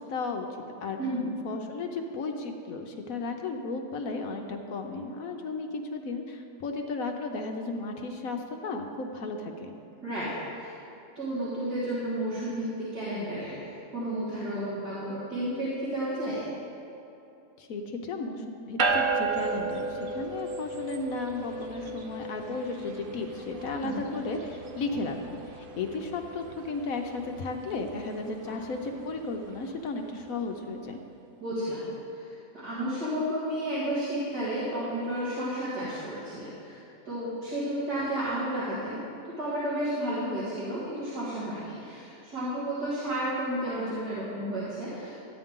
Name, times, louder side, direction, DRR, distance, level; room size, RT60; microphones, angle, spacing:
voice 1, 0.0-1.0 1.4-9.7 17.6-31.0, left 3 dB, 65° left, 4 dB, 1.1 m, -34 dB
voice 2, 1.0-1.4 10.0-10.7 11.2-13.5 13.9-16.5 23.8-24.0 28.5-28.6 31.4-31.9 32.1-32.3 32.5-36.8 37.1-39.0 39.4-45.3, right 1 dB, 85° right, -12 dB, 2.9 m, -32 dB
sound 1, 18.8-30.4, right 3 dB, 60° right, 0.5 m, -35 dB
14.0 x 9.0 x 3.7 m, 2.8 s
omnidirectional pair, 1.7 m